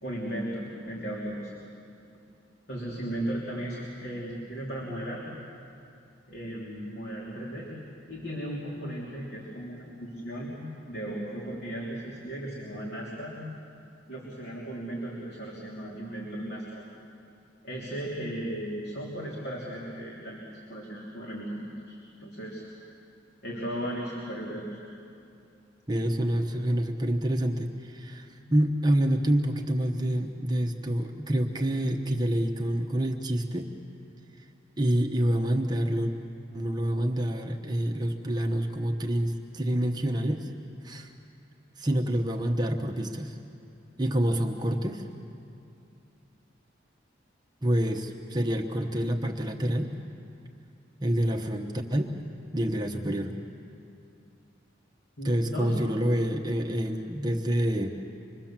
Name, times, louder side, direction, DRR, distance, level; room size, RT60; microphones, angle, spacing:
voice 1, 0.0-1.5 2.7-5.2 6.3-7.7 8.1-10.6 10.9-13.4 14.1-16.8 17.6-22.6 23.4-24.7 55.2-55.8, right 1 dB, 60° left, -4 dB, 3.4 m, -36 dB
voice 2, 25.9-33.7 34.4-34.5 34.8-36.1 36.5-40.5 40.8-41.1 41.8-43.4 44.0-45.0 47.6-49.9 51.0-52.1 52.5-53.3 55.2-57.9, right 1 dB, 20° right, 2 dB, 1.1 m, -27 dB
26.0 x 22.0 x 7.4 m, 2.6 s
head